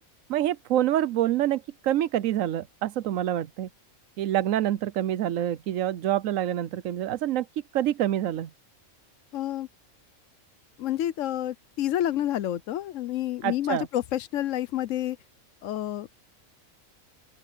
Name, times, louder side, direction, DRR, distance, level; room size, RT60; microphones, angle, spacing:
voice 1, 0.3-3.7 4.2-7.5 7.7-8.5 13.4-13.9, right 12 dB, 80° right, 1.0 m, -26 dB
voice 2, 9.3-9.7 10.8-15.2 15.6-16.1, left 12 dB, 75° left, 1.0 m, -29 dB
open air
omnidirectional pair, 1.4 m